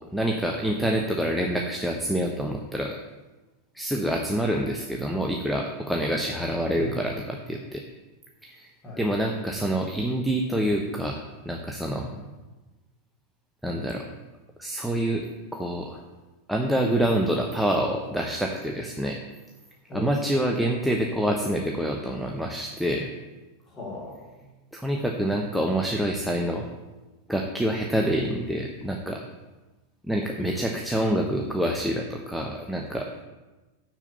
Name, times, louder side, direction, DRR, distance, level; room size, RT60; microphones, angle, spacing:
voice 1, 0.1-3.0 3.7-7.8 8.4-8.7 9.0-12.1 13.6-14.0 14.6-15.3 15.5-16.0 16.5-19.2 19.9-23.1 24.7-26.6 27.3-29.2 30.1-33.1, right 1 dB, ahead, 1 dB, 1.0 m, -27 dB
voice 2, 6.7-7.2 8.8-9.1 12.0-12.2 19.9-20.1 23.7-24.5 28.0-28.3, left 1 dB, 20° left, -5 dB, 4.3 m, -38 dB
7.3 x 7.3 x 8.1 m, 1.2 s
figure-of-eight pair, 90°, 0 cm